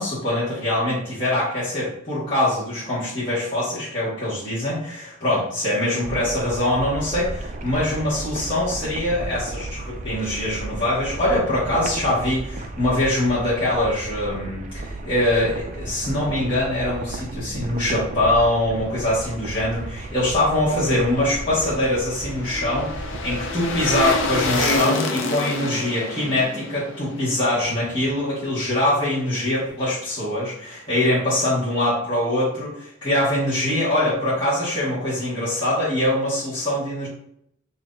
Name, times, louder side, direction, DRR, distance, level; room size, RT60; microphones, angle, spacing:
voice 1, 0.0-37.1, left 1 dB, 25° left, -11 dB, 1.5 m, -23 dB
sound 1, 6.0-24.8, right 2 dB, 40° right, 0.4 m, -34 dB
sound 2, 21.2-28.4 28.7-28.8, left 2 dB, 70° left, 0.6 m, -28 dB
5.8 x 2.8 x 2.5 m, 0.74 s
head